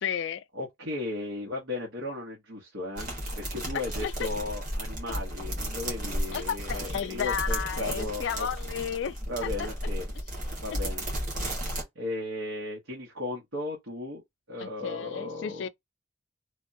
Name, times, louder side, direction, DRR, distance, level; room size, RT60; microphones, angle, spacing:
voice 1, 0.0-0.4 4.0-4.3 6.3-9.7 14.6-15.7, left 7 dB, 70° left, 0.3 m, -33 dB
voice 2, 0.5-8.5 9.3-10.1 10.6-11.0 11.9-14.2 14.5-15.7, left 2 dB, 90° right, 1.0 m, -36 dB
sound 1, 3.0-11.8, equal, 45° right, 1.5 m, -33 dB
3.3 x 2.2 x 2.6 m
head